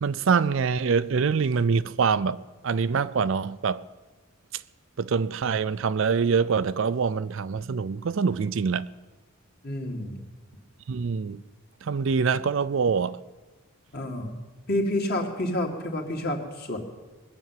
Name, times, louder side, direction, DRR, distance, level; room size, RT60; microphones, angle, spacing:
voice 1, 0.0-2.4 2.6-3.8 5.0-8.9 10.9-11.4 11.8-13.2, right 5 dB, 60° right, 0.4 m, -25 dB
voice 2, 9.6-10.2 13.9-14.4 14.7-16.8, left 1 dB, 45° left, 2.2 m, -29 dB
21.0 x 7.0 x 9.2 m
head